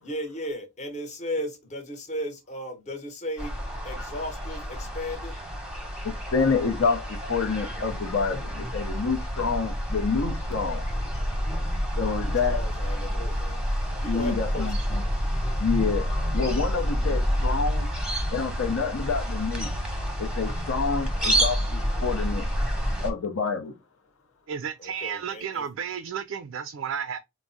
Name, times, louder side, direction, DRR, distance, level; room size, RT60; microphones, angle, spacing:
voice 1, 0.0-3.5 3.8-5.3 12.1-13.6 14.0-14.7 24.8-25.6, equal, 35° left, 0.9 m, -35 dB
sound 1, 3.4-23.1, equal, 5° right, 0.8 m, -28 dB
voice 2, 6.0-10.8 12.0-12.6 14.1-15.0 15.6-16.1 16.3-17.9 18.3-19.7 20.2-22.5 23.0-23.7, left 5 dB, 70° left, 0.6 m, -28 dB
voice 3, 24.5-27.2, right 7 dB, 65° right, 0.3 m, -32 dB
4.5 x 2.1 x 2.5 m
head